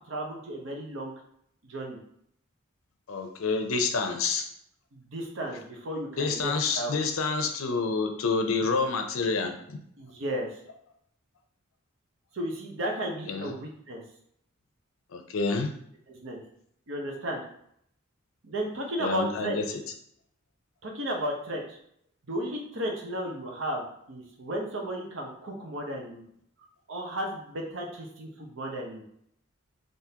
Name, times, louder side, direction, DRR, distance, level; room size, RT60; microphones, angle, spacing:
voice 1, 0.1-1.1 1.6-2.0 4.9-6.9 10.0-10.5 12.3-14.0 16.1-16.4 16.9-17.4 18.4-19.6 20.8-21.8 22.3-26.2 26.9-29.0, right 1 dB, 65° right, 1 dB, 0.8 m, -34 dB
voice 2, 3.1-4.4 6.2-9.8 13.3-13.5 15.1-15.7 19.0-19.6, left 4 dB, 85° left, 5 dB, 0.5 m, -28 dB
3.6 x 2.6 x 2.8 m, 0.69 s
head